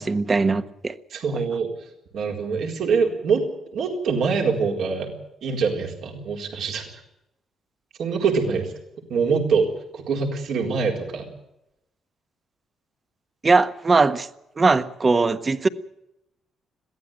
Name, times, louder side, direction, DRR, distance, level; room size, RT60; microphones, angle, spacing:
voice 1, 0.0-0.9 13.4-14.3 14.6-15.7, right 3 dB, 30° right, 11 dB, 1.4 m, -20 dB
voice 2, 1.1-3.5 3.7-5.1 5.4-6.9 8.0-8.7 9.1-11.3, right 5 dB, 70° right, 1 dB, 4.2 m, -24 dB
22.0 x 15.5 x 9.1 m, 0.85 s
cardioid pair, 90°, 0 cm